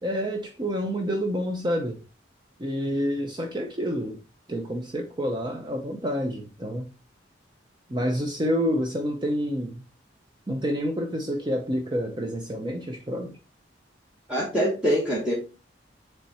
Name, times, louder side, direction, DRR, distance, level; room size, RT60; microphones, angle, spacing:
voice 1, 0.0-2.0 2.6-4.2 4.5-6.9 7.9-9.8 10.5-13.4, equal, 25° right, 0.6 m, -28 dB
voice 2, 14.3-15.3, equal, 5° right, 1.5 m, -24 dB
7.4 x 3.4 x 4.1 m
head